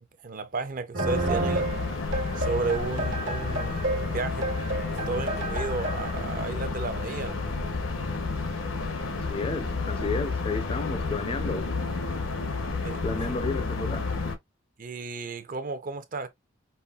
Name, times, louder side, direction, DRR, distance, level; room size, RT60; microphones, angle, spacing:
voice 1, 0.2-1.7 2.4-4.5 5.1-7.4 12.8-13.0 14.8-16.3, right 3 dB, 45° right, 0.6 m, -33 dB
sound 1, 0.9-6.2, right 2 dB, 75° right, 1.3 m, -31 dB
sound 2, 1.1-14.4, left 3 dB, 85° left, 0.9 m, -31 dB
voice 2, 9.2-11.7 13.0-14.1, left 3 dB, 30° left, 0.4 m, -32 dB
5.5 x 2.3 x 2.3 m
head